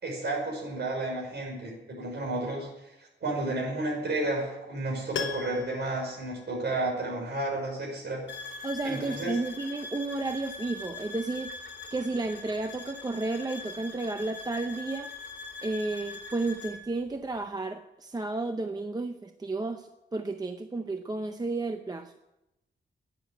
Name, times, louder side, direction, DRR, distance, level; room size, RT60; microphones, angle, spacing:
voice 1, 0.0-8.2 8.8-9.4, right 2 dB, 60° right, 0 dB, 5.6 m, -32 dB
Piano, 5.1-7.2 7.5-7.6, left 7 dB, 90° left, 1.2 m, -39 dB
sound 1, 8.3-16.8, left 3 dB, 65° left, 2.6 m, -42 dB
voice 2, 8.6-11.6 11.9-15.1 15.6-22.1, right 3 dB, 20° right, 7 dB, 0.6 m, -32 dB
11.5 x 9.9 x 9.1 m, 0.93 s
wide cardioid pair, 155°, 19 cm